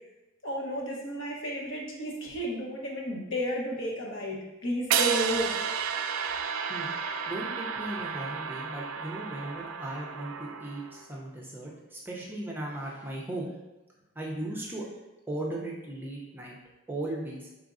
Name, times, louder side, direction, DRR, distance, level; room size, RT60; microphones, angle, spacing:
voice 1, 0.4-5.5, equal, 65° left, -2 dB, 0.9 m, -32 dB
sound 1, 4.9-11.0, right 7 dB, 75° right, 0.3 m, -32 dB
voice 2, 7.3-13.5 14.1-14.9 15.3-16.6 16.9-17.5, right 1 dB, 10° right, -3 dB, 0.6 m, -37 dB
5.0 x 3.4 x 2.5 m, 1.0 s
head